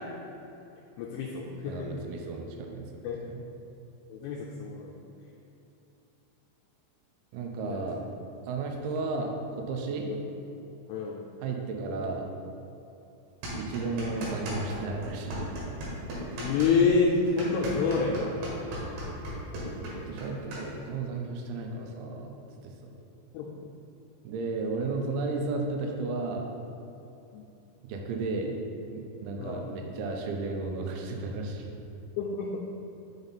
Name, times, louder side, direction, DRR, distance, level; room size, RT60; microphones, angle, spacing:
voice 1, 1.0-2.0 3.0-3.2 4.1-4.9 7.6-7.8 10.1-10.2 10.9-11.2 16.4-18.3 23.3-23.5 27.3-27.4 29.4-29.6 32.2-32.6, left 4 dB, 85° left, -2 dB, 2.9 m, -27 dB
voice 2, 1.7-3.4 7.3-8.0 8.5-10.1 11.4-12.3 13.6-15.4 19.7-22.3 22.6-22.9 24.3-26.5 27.8-28.5 28.9-31.7, right 3 dB, 90° right, 2 dB, 3.5 m, -33 dB
sound 1, 13.4-14.8 15.0-20.6, right 1 dB, 70° right, 3.6 m, -36 dB
7.0 x 5.3 x 4.1 m, 2.9 s
omnidirectional pair, 6.0 m